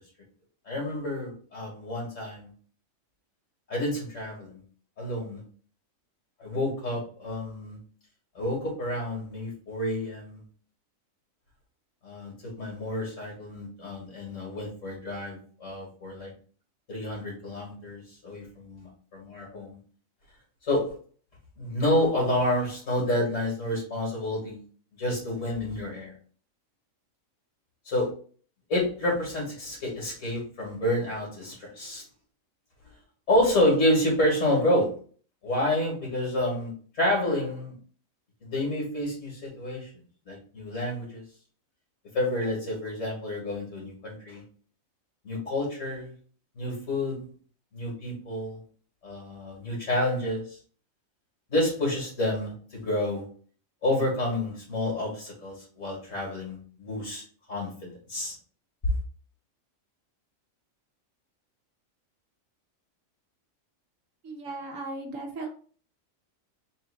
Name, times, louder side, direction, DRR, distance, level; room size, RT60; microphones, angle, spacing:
voice 1, 0.7-2.5 3.7-4.6 5.0-5.4 6.4-7.8 8.3-10.4 12.0-16.3 16.9-19.8 20.7-21.0 21.6-24.6 25.0-26.1 27.9-28.1 28.7-32.0 33.3-35.0 35.4-37.7 38.4-39.9 40.3-41.2 42.1-44.4 45.2-46.1 46.6-47.3 47.7-48.6 49.0-50.6 51.5-53.3 53.8-58.3, left 1 dB, 70° left, -4 dB, 2.2 m, -29 dB
voice 2, 64.2-65.5, right 2 dB, 70° right, 2 dB, 1.3 m, -36 dB
4.1 x 2.8 x 4.0 m, 0.43 s
omnidirectional pair, 1.4 m